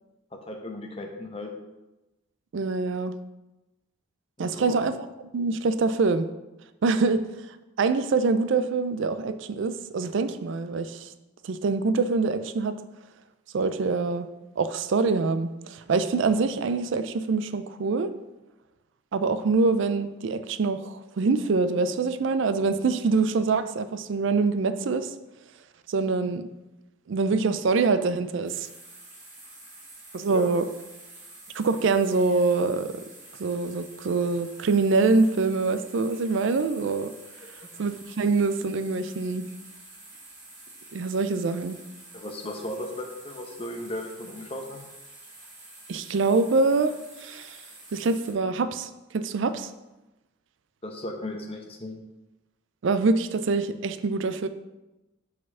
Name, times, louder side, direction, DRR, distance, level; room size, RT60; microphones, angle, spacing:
voice 1, 0.3-1.5 4.4-4.8 30.3-30.6 37.4-37.7 42.1-44.8 50.8-52.0, left 1 dB, 25° left, 3 dB, 0.7 m, -36 dB
voice 2, 2.5-3.1 4.4-4.9 5.3-6.3 6.8-7.2 7.8-11.1 11.4-12.8 13.5-14.3 14.6-18.2 19.1-25.1 25.9-26.5 27.1-28.7 30.1-30.7 31.5-32.9 33.4-37.1 37.8-39.5 40.9-41.8 45.9-47.6 47.9-49.7 52.8-54.5, right 4 dB, 65° right, 12 dB, 0.4 m, -25 dB
sound 1, 28.5-48.3, right 2 dB, 35° right, 2.1 m, -48 dB
5.0 x 4.2 x 5.4 m, 1.0 s
head